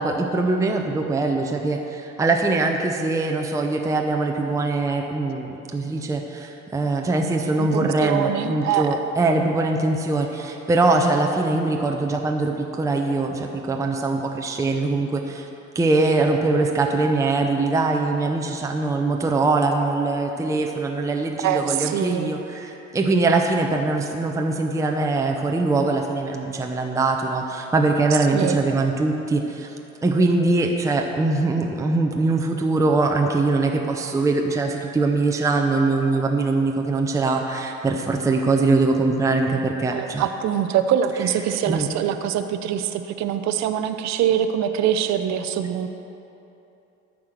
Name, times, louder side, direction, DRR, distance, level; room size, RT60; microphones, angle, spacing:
voice 1, 0.0-15.5 15.7-29.7 30.0-40.3 41.7-41.9, right 3 dB, 10° right, 2 dB, 0.7 m, -22 dB
voice 2, 7.6-8.9 21.4-22.3 28.3-28.6 39.9-45.9, right 9 dB, 45° right, 9 dB, 0.7 m, -24 dB
13.5 x 4.9 x 6.0 m, 2.9 s
figure-of-eight pair, 60°, 40 cm